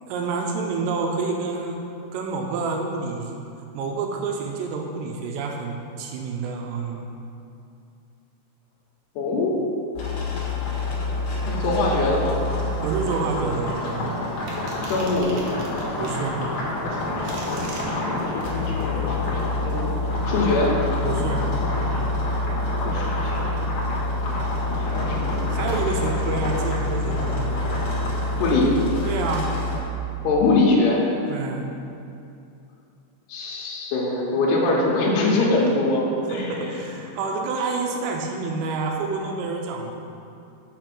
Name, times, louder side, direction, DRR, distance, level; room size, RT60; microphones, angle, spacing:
voice 1, 0.1-1.8 2.1-3.3 3.7-7.1 12.8-14.2 16.0-16.4 21.0-21.5 25.5-27.5 29.1-29.5 31.3-31.7 36.3-39.9, right 4 dB, 85° right, 1 dB, 2.9 m, -28 dB
voice 2, 9.2-9.5 11.4-12.4 14.8-15.3 18.2-19.9 20.3-20.7 22.8-23.6 24.7-25.4 28.4-28.8 30.2-31.1 33.3-36.5, left 2 dB, 80° left, -4 dB, 3.0 m, -23 dB
sound 1, 10.0-29.8, left 2 dB, 60° left, 2.3 m, -26 dB
sound 2, 14.5-16.2 16.9-17.9, right 2 dB, 65° right, 2.5 m, -40 dB
6.8 x 5.4 x 5.9 m, 2.6 s
omnidirectional pair, 4.9 m